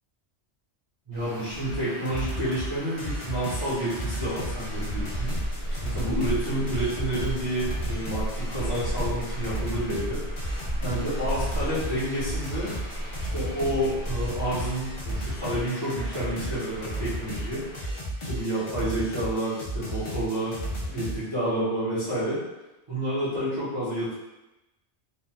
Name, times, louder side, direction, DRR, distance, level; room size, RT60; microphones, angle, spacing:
voice 1, 1.1-5.3 5.8-10.2 10.8-12.7 13.3-17.6 18.2-20.6 20.9-22.4 22.9-24.2, right 1 dB, 25° right, -13 dB, 1.1 m, -29 dB
Traffic noise roadway noise, 1.1-17.8, equal, 50° right, 1.0 m, -41 dB
sound 1, 1.7-1.8 2.1-2.7 3.0-21.1, equal, 35° left, 0.5 m, -34 dB
sound 2, 4.2-14.7, right 1 dB, 65° left, 0.9 m, -34 dB
3.2 x 2.5 x 2.2 m, 0.98 s
omnidirectional pair, 1.2 m